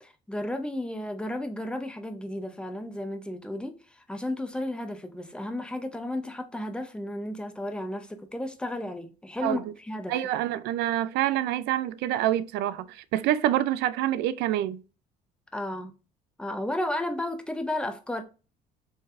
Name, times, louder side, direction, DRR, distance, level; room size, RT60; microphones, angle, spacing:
voice 1, 0.0-10.3 15.5-15.9 16.4-18.2, left 1 dB, 5° left, 0.6 m, -33 dB
voice 2, 10.1-14.8, right 12 dB, 85° right, 0.4 m, -26 dB
4.5 x 3.3 x 2.5 m
cardioid pair, 110°, 17 cm